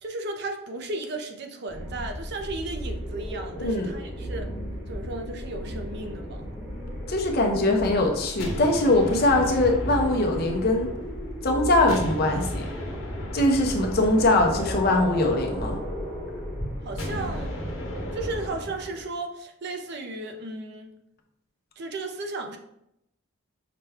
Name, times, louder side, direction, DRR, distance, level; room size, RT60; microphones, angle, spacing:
voice 1, 0.0-4.5 4.9-6.5 16.8-17.5 18.1-20.9 21.8-22.6, right 2 dB, 50° right, 5 dB, 0.5 m, -35 dB
sound 1, 1.7-18.5, equal, 5° right, 0.9 m, -35 dB
voice 2, 3.6-3.9 7.1-10.9 11.4-12.7 13.3-15.8, left 2 dB, 50° left, 2 dB, 0.6 m, -22 dB
sound 2, 8.4-11.4 11.9-16.1 17.0-19.1, equal, 75° left, 1.0 m, -37 dB
5.8 x 2.2 x 3.4 m, 0.80 s
head